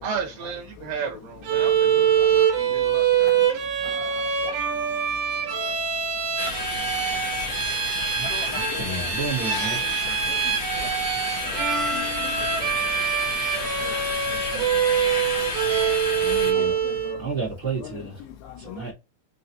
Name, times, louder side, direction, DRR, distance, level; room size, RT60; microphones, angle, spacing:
voice 1, 0.0-3.4, right 6 dB, 75° right, 2.5 m, -34 dB
Bowed string instrument, 1.4-17.2, right 8 dB, 90° right, 1.6 m, -24 dB
voice 2, 1.9-2.3 3.8-4.5 8.2-9.1 9.4-9.9 10.3-10.4 11.5-11.6 11.9-12.3 13.8-13.9 14.5-14.6 16.6-17.2 17.8-18.0 18.4-18.8, left 10 dB, 85° left, 2.4 m, -40 dB
sound 1, 6.4-16.5, left 4 dB, 70° left, 1.5 m, -31 dB
voice 3, 8.2-9.8 16.2-16.7 17.2-18.2 18.6-18.9, right 4 dB, 35° right, 1.0 m, -31 dB
6.2 x 2.4 x 2.7 m
omnidirectional pair, 4.3 m